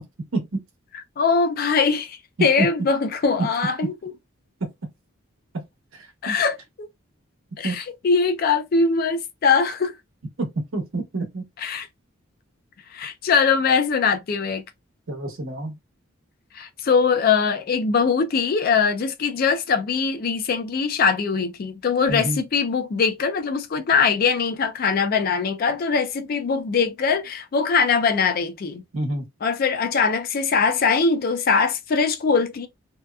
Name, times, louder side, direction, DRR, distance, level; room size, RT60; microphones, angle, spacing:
voice 1, 1.2-4.1 6.2-6.9 7.6-9.9 11.6-11.9 12.9-14.6 16.5-28.8 29.4-32.7, left 5 dB, 45° left, 0.4 m, -22 dB
voice 2, 10.4-11.4 15.1-15.7 22.1-22.4 28.9-29.2, right 2 dB, 75° right, 1.0 m, -27 dB
2.7 x 2.2 x 2.2 m
head